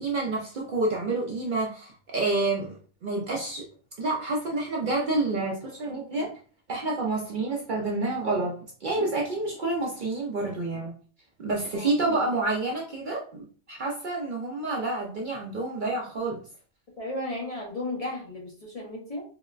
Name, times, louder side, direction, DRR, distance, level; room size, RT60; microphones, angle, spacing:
voice 1, 0.0-2.8 3.0-3.6 4.0-6.3 6.7-10.9 11.4-16.4, right 2 dB, 55° right, -1 dB, 0.6 m, -28 dB
voice 2, 17.0-19.2, left 1 dB, 35° left, -3 dB, 0.7 m, -34 dB
3.7 x 2.0 x 2.4 m, 0.42 s
omnidirectional pair, 1.2 m